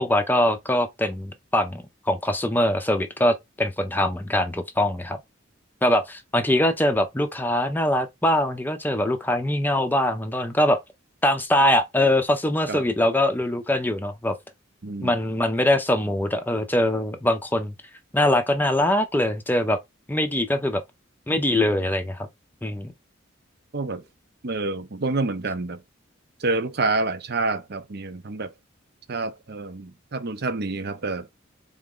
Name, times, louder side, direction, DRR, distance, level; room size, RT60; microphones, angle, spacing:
voice 1, 0.0-5.2 5.8-10.8 11.2-14.4 15.0-17.7 18.1-19.8 20.1-20.8 21.3-22.3 22.6-22.9, left 1 dB, 10° left, 0.6 m, -23 dB
voice 2, 14.8-15.1 23.7-24.0 24.4-25.8 26.4-28.5 29.1-31.3, right 3 dB, 55° right, 0.7 m, -28 dB
3.9 x 3.6 x 3.7 m
head